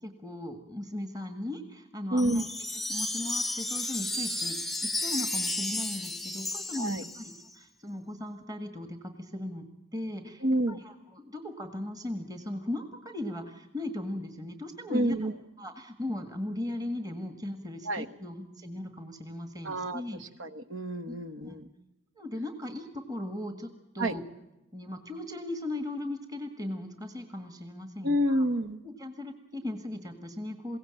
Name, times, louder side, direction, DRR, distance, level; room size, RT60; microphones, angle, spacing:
voice 1, 0.0-2.5 2.9-9.6 9.9-15.3 15.6-20.2 21.1-21.2 21.4-21.6 22.2-24.2 24.7-28.4 28.8-30.8, left 1 dB, 20° right, 7 dB, 1.8 m, -38 dB
voice 2, 2.1-2.4 6.8-7.0 10.4-10.8 14.9-15.3 17.8-18.1 19.6-20.0 20.4-21.7 24.0-24.1 28.0-28.8, right 1 dB, 70° right, 11 dB, 1.2 m, -28 dB
Wind chime, 2.2-7.5, left 2 dB, ahead, 0.7 m, -33 dB
22.0 x 17.0 x 8.9 m, 0.94 s
head